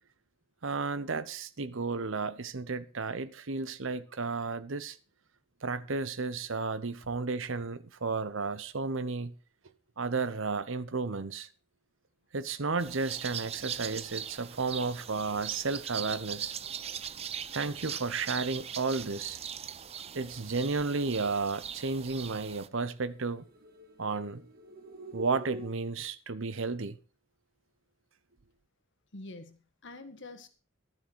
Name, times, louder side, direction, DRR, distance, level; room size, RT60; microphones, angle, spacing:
voice 1, 0.6-5.0 5.6-9.3 10.0-11.5 12.3-16.5 17.5-19.4 20.1-23.4 24.0-24.4 25.1-27.0, right 4 dB, 60° right, 0.8 m, -33 dB
sound 1, 12.8-22.7, right 8 dB, 30° right, 0.5 m, -40 dB
sound 2, 22.7-25.7, right 2 dB, 45° right, 1.7 m, -47 dB
voice 2, 29.1-30.5, left 2 dB, 55° left, 1.7 m, -46 dB
12.0 x 10.5 x 4.6 m
head